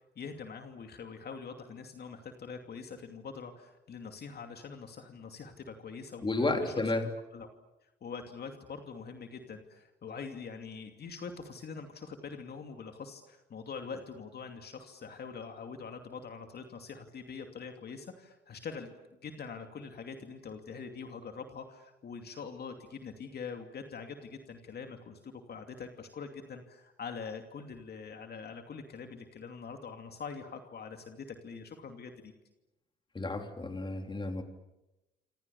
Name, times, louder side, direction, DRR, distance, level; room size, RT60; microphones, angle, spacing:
voice 1, 0.0-6.7 7.3-7.5 8.0-18.9 19.2-32.3, left 5 dB, 55° left, 5 dB, 2.7 m, -44 dB
voice 2, 6.2-7.1 33.1-34.4, left 2 dB, 25° left, 5 dB, 3.6 m, -31 dB
27.5 x 27.0 x 7.1 m, 0.98 s
cardioid pair, 90°, 20 cm